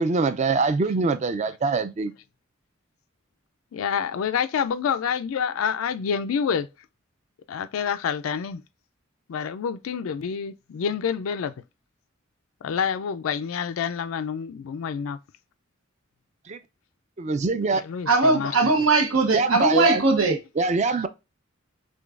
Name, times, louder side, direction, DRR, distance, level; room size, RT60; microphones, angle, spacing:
voice 1, 0.0-2.1 16.5-16.6 17.2-17.8 19.3-20.0 20.6-21.1, right 4 dB, 35° right, 0.4 m, -23 dB
voice 2, 3.7-6.7 7.5-8.6 9.3-11.5 12.6-15.2 17.7-18.9 20.8-21.0, left 7 dB, 85° left, 0.4 m, -28 dB
voice 3, 18.1-20.4, right 3 dB, 90° right, 0.9 m, -20 dB
6.2 x 2.3 x 2.4 m
head